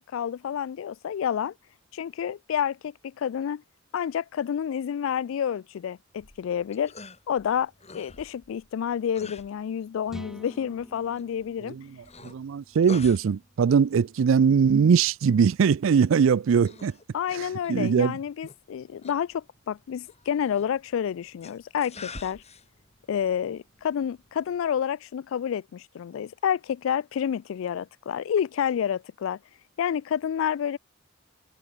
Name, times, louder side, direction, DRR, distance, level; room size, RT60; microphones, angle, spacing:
voice 1, 0.0-1.5 1.9-3.6 3.9-6.9 7.3-11.8 17.1-22.4 23.1-29.4 29.8-30.8, left 8 dB, 75° left, 0.3 m, -29 dB
sound 1, 6.1-24.8, left 3 dB, 35° left, 7.8 m, -49 dB
sound 2, 10.1-13.9, equal, ahead, 3.4 m, -47 dB
voice 2, 12.2-16.9 17.3-17.4 17.7-18.1, right 6 dB, 75° right, 0.4 m, -21 dB
head